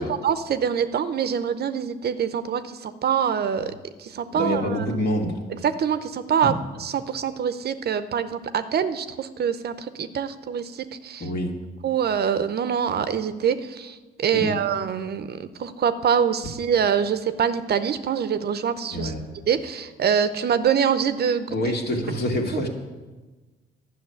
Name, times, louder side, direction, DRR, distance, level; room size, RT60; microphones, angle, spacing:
voice 1, 0.0-3.7 4.0-4.8 5.6-6.5 6.8-11.2 11.8-19.1 19.5-21.5, right 7 dB, 55° right, 11 dB, 0.7 m, -25 dB
voice 2, 4.3-5.4 6.4-6.5 11.2-11.6 14.3-14.5 18.9-19.2 21.5-22.7, equal, 55° left, 1 dB, 2.3 m, -26 dB
11.5 x 6.5 x 9.2 m, 1.2 s
cardioid pair, 90°, 20 cm